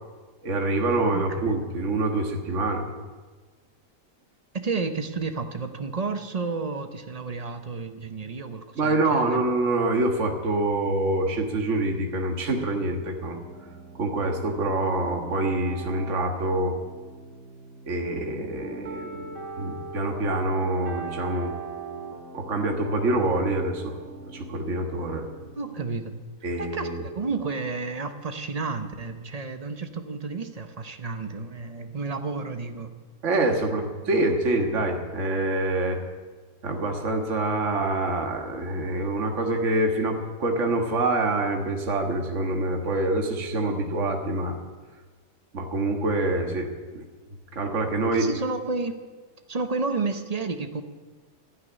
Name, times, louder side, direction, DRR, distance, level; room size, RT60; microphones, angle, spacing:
voice 1, 0.4-2.8 8.8-13.4 14.0-16.8 17.9-19.2 19.6-21.5 22.3-24.0 24.3-25.3 26.4-27.1 33.2-36.0 36.6-44.6 45.5-47.0 47.5-48.3, right 2 dB, 45° right, 2 dB, 1.8 m, -26 dB
voice 2, 1.1-1.7 4.5-9.4 25.6-26.1 26.6-32.9 48.1-49.0 49.5-50.8, right 4 dB, 30° right, 7 dB, 0.7 m, -31 dB
sound 1, 13.3-26.0, right 4 dB, 85° right, 2.6 m, -41 dB
12.5 x 9.7 x 9.8 m, 1.3 s
omnidirectional pair, 1.8 m